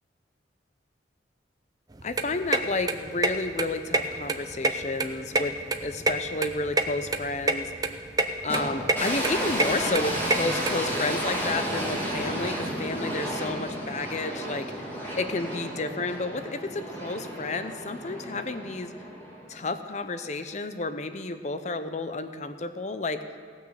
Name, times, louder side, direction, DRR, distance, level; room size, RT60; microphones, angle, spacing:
sound 1, 1.9-10.7, right 2 dB, 20° right, 0.5 m, -27 dB
voice 1, 2.0-7.7 8.4-18.9 19.5-23.2, left 3 dB, 40° left, 10 dB, 0.6 m, -31 dB
sound 2, 8.5-19.7, right 1 dB, 10° left, 2.1 m, -32 dB
17.0 x 6.3 x 6.5 m, 2.2 s
head